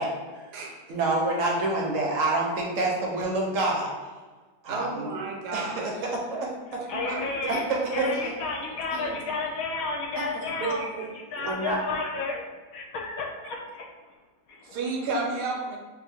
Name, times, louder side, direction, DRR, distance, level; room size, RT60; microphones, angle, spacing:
voice 1, 0.0-0.5 0.9-3.9 4.6-5.1 5.5-6.8 7.5-8.3 10.1-10.2 11.4-11.8, right 2 dB, 65° right, -2 dB, 0.9 m, -28 dB
voice 2, 0.5-1.0 4.7-5.9 6.9-7.6 9.0-9.1 10.6-11.1 11.3-11.5 14.6-15.8, right 3 dB, 85° right, 0 dB, 1.3 m, -32 dB
voice 3, 6.9-10.8 11.3-12.4 12.7-13.9 14.5-14.8, left 3 dB, 70° left, 0 dB, 0.9 m, -31 dB
2.8 x 2.5 x 4.2 m, 1.4 s
omnidirectional pair, 1.7 m